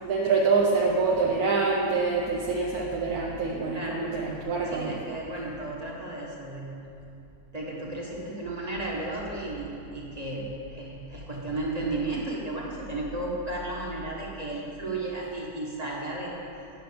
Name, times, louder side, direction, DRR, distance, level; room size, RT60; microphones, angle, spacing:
voice 1, 0.0-4.9, right 4 dB, 70° right, -2 dB, 1.3 m, -25 dB
voice 2, 3.7-4.4 4.7-6.9 7.5-16.4, right 2 dB, 25° right, -3 dB, 1.5 m, -34 dB
10.5 x 5.9 x 6.8 m, 2.6 s
omnidirectional pair, 1.7 m